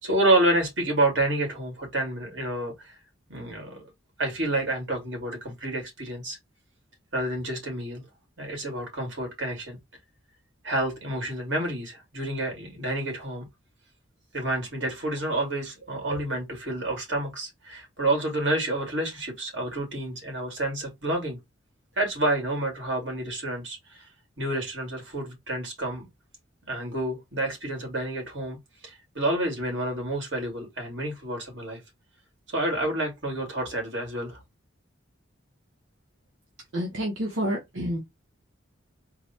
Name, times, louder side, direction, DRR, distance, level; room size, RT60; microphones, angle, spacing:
voice 1, 0.0-2.9 3.3-3.9 4.2-6.4 7.1-8.0 8.4-9.8 10.6-13.4 14.3-21.4 22.0-24.1 24.4-26.1 26.7-28.6 28.8-31.8 32.5-34.4, right 1 dB, 70° right, 2.3 m, -29 dB
voice 2, 36.7-38.0, equal, 90° right, 1.0 m, -29 dB
4.0 x 2.2 x 4.2 m
head